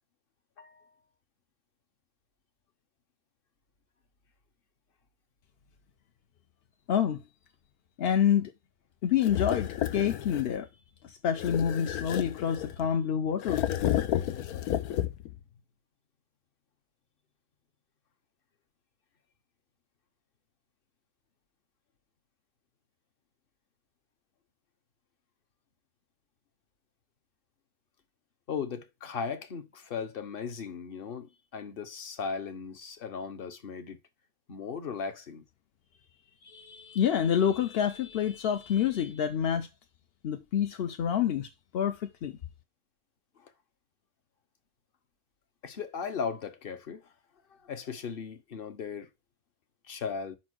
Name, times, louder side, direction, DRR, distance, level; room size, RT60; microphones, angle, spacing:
voice 1, 0.6-0.9 28.5-34.0 34.5-35.4 43.4-43.5 45.6-47.1 47.6-49.1 49.8-50.4, left 6 dB, 45° left, 0.9 m, -37 dB
voice 2, 6.9-7.2 8.0-8.5 9.0-10.7 11.0-13.6 36.4-39.7 40.2-41.5 41.7-42.3, left 9 dB, 60° left, 0.6 m, -27 dB
sound 1, 9.2-10.6 11.4-12.9 13.4-15.4, left 12 dB, 80° left, 1.1 m, -31 dB
5.4 x 4.3 x 6.1 m
omnidirectional pair, 1.6 m